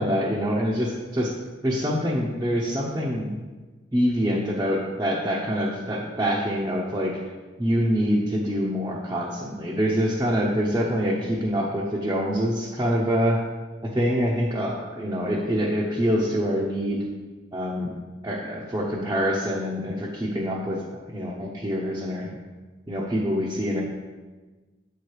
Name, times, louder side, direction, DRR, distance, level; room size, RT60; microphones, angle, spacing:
voice 1, 0.0-1.3 1.6-3.4 3.9-7.2 7.6-13.4 13.8-17.0 17.5-17.9 18.2-20.8 21.1-22.3 22.9-23.8, equal, 15° right, -5 dB, 0.7 m, -25 dB
7.5 x 4.6 x 4.8 m, 1.3 s
head